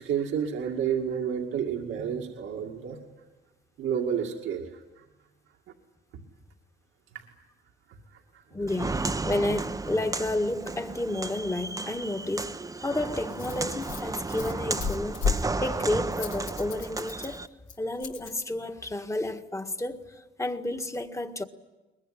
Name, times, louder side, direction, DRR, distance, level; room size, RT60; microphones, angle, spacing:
voice 1, 0.0-3.0 3.8-5.0 6.1-6.2 7.1-7.3 7.9-8.4, right 8 dB, 85° right, 2.2 m, -31 dB
voice 2, 8.5-17.5 17.8-21.4, left 1 dB, 15° left, 1.7 m, -31 dB
Walk footsteps, 8.7-17.5, right 3 dB, 15° right, 0.9 m, -33 dB
Rattle, 12.5-18.3, left 5 dB, 80° left, 2.6 m, -35 dB
22.0 x 21.0 x 10.0 m
cardioid pair, 90°, 20 cm